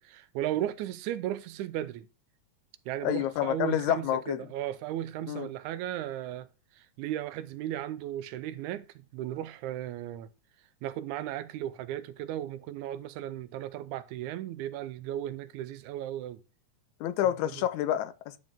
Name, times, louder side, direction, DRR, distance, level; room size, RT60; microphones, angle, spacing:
voice 1, 0.0-2.1 2.9-6.5 6.8-8.9 9.1-10.3 10.8-16.4, right 12 dB, 85° right, 2.0 m, -35 dB
voice 2, 3.0-4.4 5.3-5.5 17.0-18.4, left 12 dB, 85° left, 2.0 m, -28 dB
10.5 x 5.4 x 3.5 m
omnidirectional pair, 3.4 m